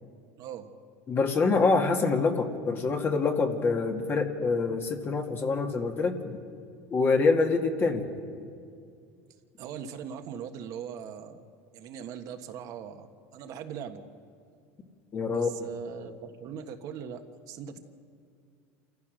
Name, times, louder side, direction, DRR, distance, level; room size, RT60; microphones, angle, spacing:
voice 1, 0.4-0.7 9.6-11.4 11.7-13.1 13.3-14.0 15.3-17.8, right 8 dB, 55° right, 5 dB, 1.5 m, -40 dB
voice 2, 1.1-6.2 6.9-8.0 15.1-15.5, left 4 dB, 30° left, 3 dB, 2.1 m, -25 dB
28.0 x 14.5 x 6.4 m, 2.3 s
supercardioid pair, 110°, 7 cm